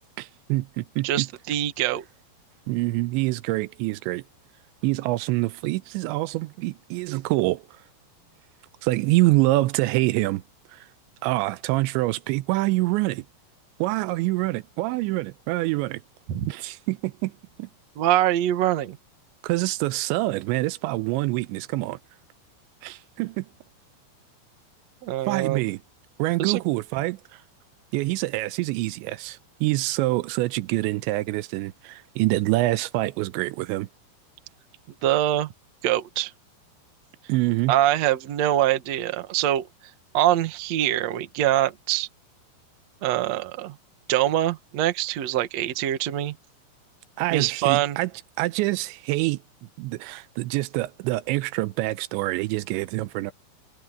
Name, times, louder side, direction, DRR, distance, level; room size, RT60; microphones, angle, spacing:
voice 1, 0.2-1.3 2.7-4.2 4.8-7.6 8.8-10.4 10.7-10.9 11.2-13.3 13.8-16.0 16.5-17.3 17.6-17.7 19.4-22.0 22.8-23.5 25.2-25.8 26.2-27.2 27.9-33.9 37.3-37.7 47.2-48.1 48.4-49.4 49.8-53.3, right 19 dB, 85° right, 2.9 m, -25 dB
voice 2, 1.0-2.0 16.3-16.5 18.0-19.0 25.0-25.6 26.4-26.6 35.0-35.5 35.8-36.3 37.7-39.7 40.1-42.1 43.0-43.8 44.1-46.3 47.3-48.0, right 12 dB, 70° right, 1.6 m, -24 dB
omnidirectional pair, 5.2 m